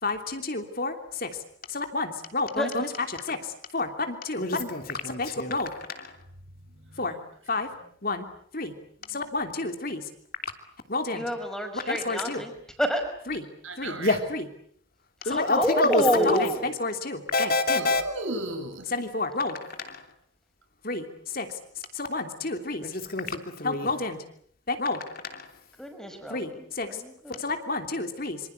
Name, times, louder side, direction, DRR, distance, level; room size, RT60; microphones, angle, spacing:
voice 1, 0.0-1.3 1.7-2.9 3.3-3.4 3.7-6.1 7.0-7.1 7.5-7.7 8.0-8.2 8.5-8.7 9.1-10.0 10.9-11.2 11.7-12.4 13.3-13.4 13.8-14.5 15.2-18.0 18.9-20.0 20.8-21.1 21.3-21.5 21.9-24.2 24.7-25.4 26.3-26.9 27.4-28.4, left 3 dB, 45° left, 6 dB, 3.0 m, -28 dB
voice 2, 6.6-7.2 7.5-7.8 9.0-9.3 13.6-14.2 17.8-18.9, right 2 dB, 80° right, 8 dB, 6.7 m, -36 dB
voice 3, 11.1-12.5 12.8-13.0 15.2-16.7 25.8-27.4, equal, 5° left, 5 dB, 5.6 m, -28 dB
27.0 x 26.0 x 8.2 m, 0.63 s
head